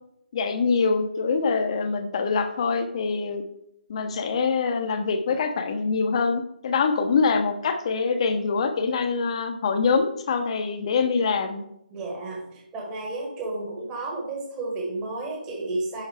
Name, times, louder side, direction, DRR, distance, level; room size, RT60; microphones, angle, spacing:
voice 1, 0.3-3.4 3.9-11.6, left 5 dB, 35° left, 7 dB, 0.8 m, -24 dB
voice 2, 11.9-16.0, right 2 dB, 15° right, -2 dB, 1.4 m, -32 dB
10.5 x 4.0 x 3.4 m, 0.78 s
hypercardioid pair, 160°, 5 cm